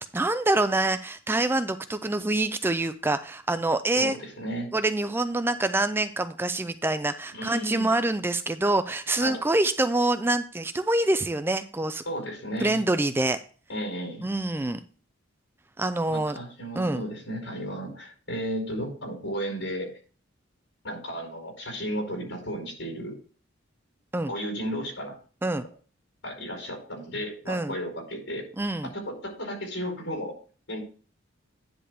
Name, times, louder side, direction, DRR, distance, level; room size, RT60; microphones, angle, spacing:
voice 1, 0.1-4.2 4.7-12.0 12.6-13.4 14.2-14.8 15.8-16.4 16.8-17.0 24.1-24.3 25.4-25.7 27.5-27.7 28.6-28.9, right 2 dB, 10° right, 11 dB, 0.3 m, -26 dB
voice 2, 4.0-4.7 7.3-7.9 9.2-9.4 12.0-12.8 13.7-14.2 16.1-19.9 20.8-23.1 24.3-25.2 26.2-28.5 28.9-30.3 30.7-30.8, equal, 80° left, 0 dB, 5.0 m, -34 dB
10.0 x 3.4 x 6.6 m, 0.39 s
head